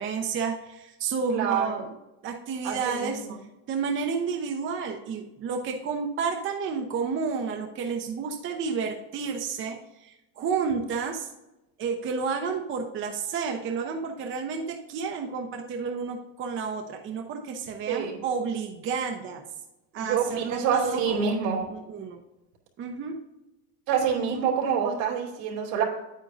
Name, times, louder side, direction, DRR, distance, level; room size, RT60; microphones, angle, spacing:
voice 1, 0.0-1.9 2.2-3.3 3.7-11.3 11.8-19.4 19.9-22.2 22.8-23.1, right 5 dB, 30° right, 3 dB, 0.8 m, -31 dB
voice 2, 1.3-1.9 2.6-3.4 17.9-18.2 20.0-21.6 23.9-25.8, right 7 dB, 85° right, -2 dB, 2.8 m, -27 dB
9.1 x 9.0 x 2.6 m, 0.96 s
cardioid pair, 140°, 38 cm